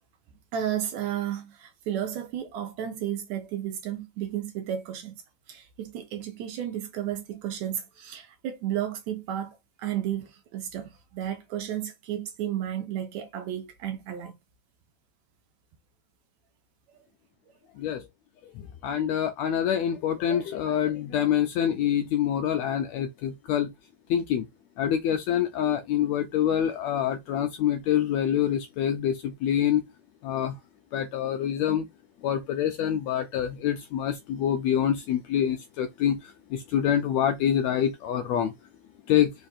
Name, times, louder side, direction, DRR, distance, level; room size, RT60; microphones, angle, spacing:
voice 1, 0.5-5.1 5.5-14.3, right 10 dB, 75° right, 1.8 m, -33 dB
voice 2, 18.8-23.7 24.1-24.5 24.8-29.8 30.2-30.5 30.9-31.8 32.2-36.2 36.5-38.5 39.1-39.3, left 10 dB, 80° left, 1.6 m, -26 dB
5.1 x 2.4 x 4.1 m
omnidirectional pair, 3.6 m